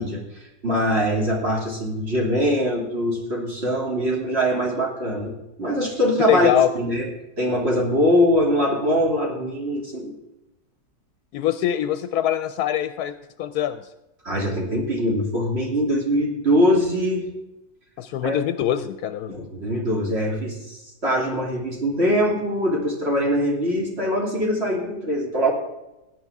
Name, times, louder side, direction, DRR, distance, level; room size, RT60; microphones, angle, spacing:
voice 1, 0.0-5.3 5.6-6.5 6.7-7.1 7.4-10.1 14.2-17.2 18.2-18.4 19.3-20.8 21.0-25.5, equal, 40° right, -2 dB, 3.0 m, -22 dB
voice 2, 6.3-6.7 11.3-13.8 18.0-19.4, left 11 dB, 80° left, 11 dB, 1.1 m, -23 dB
17.0 x 9.5 x 3.5 m, 0.97 s
omnidirectional pair, 1.7 m